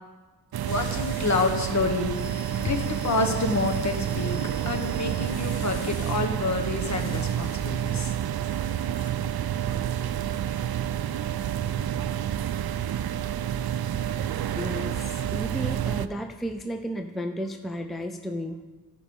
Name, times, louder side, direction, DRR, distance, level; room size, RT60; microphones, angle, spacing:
sound 1, 0.5-16.1, right 10 dB, 70° right, 0.5 m, -29 dB
sound 2, 0.7-1.7 2.1-6.3 6.8-7.9 8.4-9.1, left 4 dB, 75° left, 1.2 m, -46 dB
voice 1, 0.7-4.4 4.6-8.1, left 3 dB, 45° left, 4 dB, 1.2 m, -28 dB
voice 2, 14.5-18.6, equal, ahead, 6 dB, 0.5 m, -33 dB
15.5 x 5.2 x 5.4 m, 1.3 s
wide cardioid pair, 125°, 39 cm